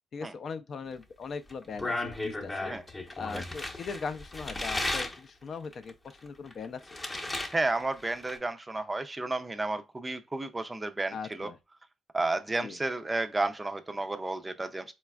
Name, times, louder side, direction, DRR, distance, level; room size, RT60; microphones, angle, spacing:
voice 1, 0.1-2.7 3.2-5.9 6.2-7.0 11.1-11.6 12.6-12.8, left 5 dB, 55° left, 0.4 m, -39 dB
sound 1, 1.5-5.2 5.7-7.5 7.8-8.4, left 2 dB, 25° left, 0.7 m, -35 dB
voice 2, 7.5-11.5 12.1-14.9, right 2 dB, 20° right, 0.4 m, -32 dB
4.0 x 2.3 x 2.2 m
cardioid pair, 90°, 0 cm